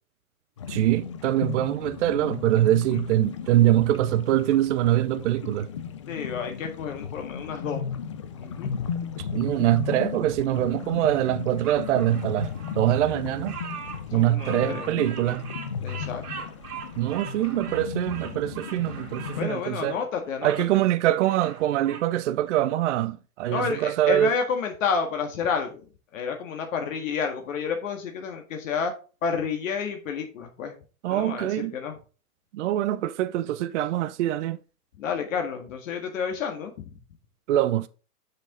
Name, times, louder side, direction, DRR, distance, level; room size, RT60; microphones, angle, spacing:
sound 1, 0.6-19.5, left 7 dB, 25° left, 0.3 m, -35 dB
voice 1, 0.7-5.7 9.2-13.6 14.1-15.4 17.0-20.0 20.4-24.4 31.0-31.8 32.5-34.6 37.5-37.9, right 13 dB, 55° right, 0.6 m, -24 dB
voice 2, 6.1-8.0 8.4-8.9 14.1-15.4 15.8-16.3 19.4-20.5 23.5-25.9 26.1-28.9 29.2-30.7 31.1-32.0 35.0-36.9, left 6 dB, 60° left, 1.8 m, -30 dB
Bird vocalization bird call bird song, 11.6-20.6 21.1-22.1, right 6 dB, 80° right, 2.3 m, -41 dB
6.5 x 6.0 x 3.9 m
hypercardioid pair, 130°, 44 cm